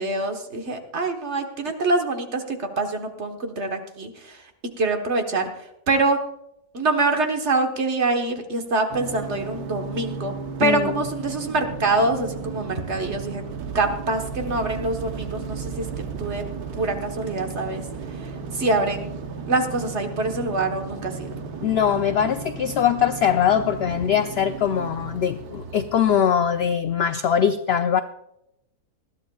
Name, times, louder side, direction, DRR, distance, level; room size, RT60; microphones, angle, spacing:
voice 1, 0.0-4.4 4.8-6.2 6.7-10.3 10.6-13.4 13.7-15.9 16.2-16.4 16.7-17.8 18.2-19.2 19.5-21.3, right 2 dB, 50° right, 5 dB, 1.5 m, -25 dB
sound 1, 8.9-26.2, right 5 dB, 80° right, 1.5 m, -34 dB
voice 2, 10.6-11.0 21.6-28.0, left 8 dB, 75° left, 10 dB, 0.5 m, -22 dB
20.0 x 13.5 x 2.3 m, 0.81 s
omnidirectional pair, 1.6 m